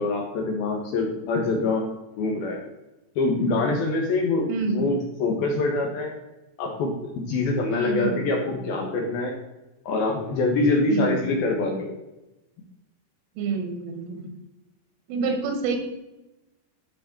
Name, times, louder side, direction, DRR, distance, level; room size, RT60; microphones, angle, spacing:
voice 1, 0.0-1.8 2.2-2.6 3.2-6.1 6.6-9.3 9.9-11.9, left 3 dB, 70° left, 1 dB, 2.5 m, -25 dB
voice 2, 4.5-4.9 7.7-8.2 10.9-11.3 13.4-14.3 15.1-15.8, right 4 dB, 90° right, 5 dB, 4.0 m, -27 dB
12.0 x 5.0 x 4.3 m, 0.98 s
omnidirectional pair, 5.5 m